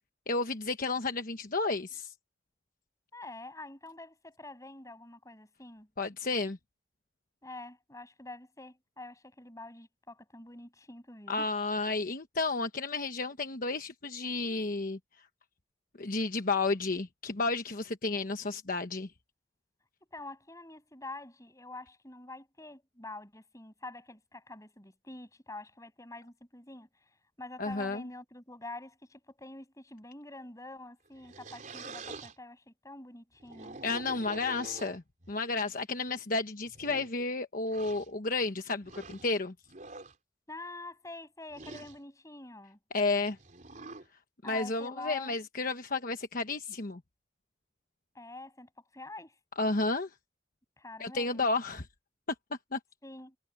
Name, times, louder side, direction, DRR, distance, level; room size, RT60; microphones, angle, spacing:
voice 1, 0.3-2.1 6.0-6.6 11.3-15.0 16.0-19.1 27.6-28.0 33.8-35.0 35.3-39.5 42.9-43.4 44.4-47.0 49.6-50.1 51.0-51.9 52.7-52.8, left 3 dB, 50° left, 1.2 m, -32 dB
voice 2, 3.1-5.9 7.4-11.5 20.1-33.8 40.5-42.8 44.4-45.4 48.1-49.4 50.8-51.5 53.0-53.4, left 2 dB, 20° left, 7.5 m, -46 dB
sound 1, 31.1-32.4 33.3-35.3 36.1-36.2 36.7-37.1 37.7-38.1 38.8-39.3 39.7-40.2 41.5-42.0 43.4-44.1, right 3 dB, 45° right, 4.1 m, -46 dB
head